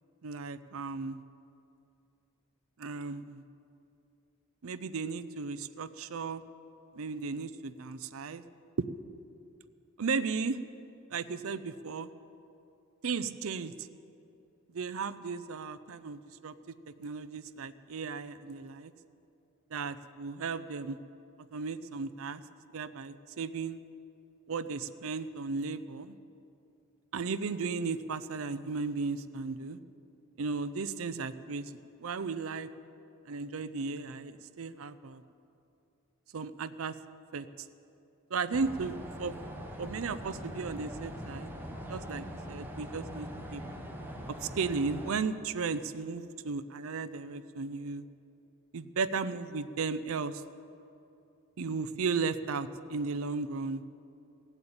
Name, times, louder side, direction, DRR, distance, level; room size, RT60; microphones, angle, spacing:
voice 1, 0.2-1.2 2.8-3.4 4.6-6.4 6.9-8.4 10.0-10.6 11.1-12.1 13.0-13.9 14.7-16.5 17.0-18.9 19.7-21.0 21.5-22.4 22.7-23.8 24.5-26.2 27.1-29.8 30.4-32.7 33.3-35.2 36.3-37.0 37.3-37.5 38.3-39.3 39.8-41.5 41.9-43.6 44.3-48.0 48.7-50.4 51.6-53.8, right 4 dB, 70° right, 13 dB, 0.5 m, -35 dB
sound 1, 38.5-45.1, equal, 10° right, 1.4 m, -42 dB
16.0 x 8.1 x 8.8 m, 2.7 s
head